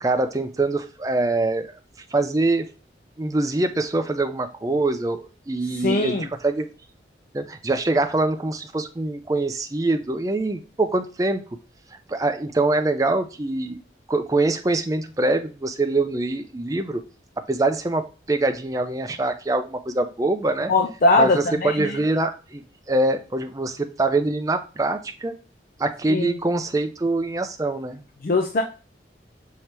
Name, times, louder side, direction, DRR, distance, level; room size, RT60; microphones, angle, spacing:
voice 1, 0.0-1.8 2.1-2.7 3.2-6.7 7.3-11.4 11.9-13.8 14.1-17.0 17.5-20.7 21.2-25.4 25.8-28.0, right 2 dB, 20° right, 0.4 m, -24 dB
voice 2, 5.8-6.3 20.7-21.8 26.1-26.3 28.2-28.6, left 2 dB, 50° left, 0.4 m, -20 dB
5.8 x 2.8 x 3.2 m
head